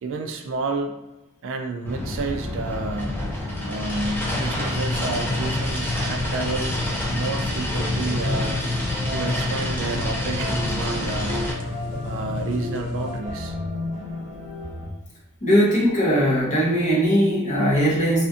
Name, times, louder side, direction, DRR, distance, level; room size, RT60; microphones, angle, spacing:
voice 1, 0.0-0.9 1.4-3.2 3.7-6.8 7.1-8.6 9.1-11.4 12.0-13.6, right 3 dB, 65° right, 5 dB, 0.3 m, -30 dB
sound 1, 1.9-11.5, left 1 dB, 10° left, 0.4 m, -28 dB
sound 2, 4.2-13.2, left 3 dB, 75° left, 0.3 m, -31 dB
sound 3, 7.6-14.9, left 1 dB, 35° right, 0.9 m, -33 dB
voice 2, 15.4-18.2, equal, 35° left, -6 dB, 0.9 m, -19 dB
2.4 x 2.4 x 2.4 m, 0.98 s
head